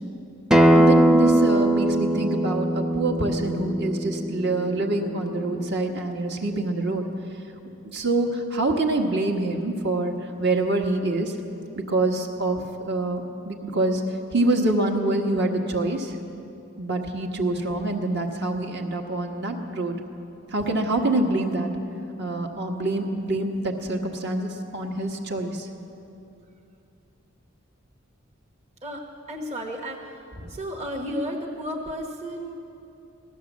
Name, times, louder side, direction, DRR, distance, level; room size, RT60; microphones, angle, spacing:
Acoustic guitar, 0.5-5.7, right 1 dB, 5° right, 0.5 m, -21 dB
voice 1, 0.7-7.1 7.8-11.4 11.8-14.0 14.3-16.2 16.8-19.9 20.5-21.7 22.2-25.7 30.4-30.5, right 2 dB, 55° right, 2 dB, 1.4 m, -26 dB
voice 2, 28.8-30.2 30.5-32.5, equal, 35° right, 0 dB, 1.1 m, -33 dB
16.0 x 12.0 x 7.3 m, 2.7 s
head